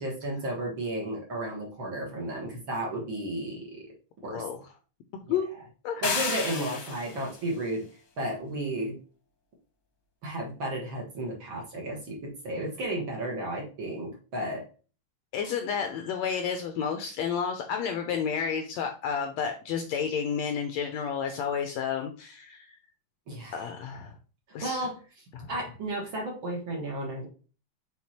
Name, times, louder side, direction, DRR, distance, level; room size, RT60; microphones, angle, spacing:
voice 1, 0.0-3.9 4.2-4.4 6.0-7.9 8.2-9.0 10.2-14.7 23.3-23.6 24.6-25.0 25.5-27.3, right 1 dB, 45° right, -1 dB, 2.1 m, -33 dB
voice 2, 4.3-4.7 5.3-5.5 5.8-6.0 15.3-22.8 23.5-24.1 24.5-24.8 25.3-25.5, left 7 dB, 75° left, 5 dB, 1.7 m, -31 dB
sound 1, 6.0-7.3, left 5 dB, 50° left, 1.4 m, -31 dB
6.2 x 4.2 x 4.2 m, 0.36 s
omnidirectional pair, 3.7 m